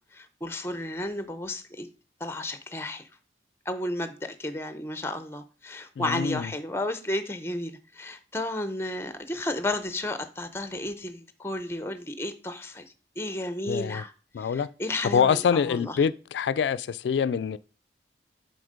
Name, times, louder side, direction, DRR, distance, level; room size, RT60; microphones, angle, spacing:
voice 1, 0.1-1.9 2.2-3.0 3.7-12.8 13.2-14.1 14.4-16.0, left 1 dB, 15° left, 0.6 m, -33 dB
voice 2, 6.0-6.5 13.7-14.0 14.3-14.7 15.1-17.6, left 7 dB, 80° left, 0.3 m, -25 dB
7.9 x 4.3 x 5.0 m
head